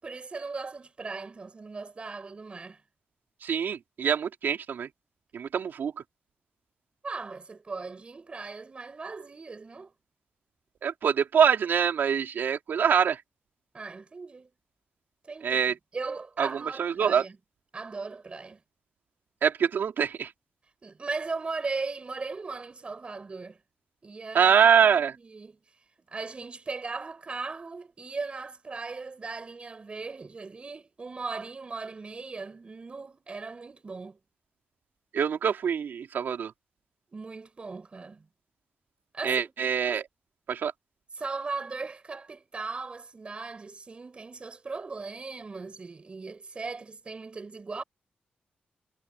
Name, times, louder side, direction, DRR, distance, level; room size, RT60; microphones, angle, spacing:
voice 1, 0.0-2.8 7.0-9.9 13.7-14.5 15.2-15.7 15.9-17.4 17.7-18.6 20.8-23.6 24.0-25.6 26.1-34.2 37.1-38.2 39.1-39.7 41.1-47.8, right 4 dB, 35° right, 6.9 m, -38 dB
voice 2, 3.4-4.9 5.3-5.9 10.8-13.2 15.4-15.7 16.4-17.2 19.4-20.3 24.3-25.1 35.1-36.5 39.2-40.0 40.5-40.7, right 7 dB, 75° right, 4.3 m, -24 dB
wide cardioid pair, 140°, 3 cm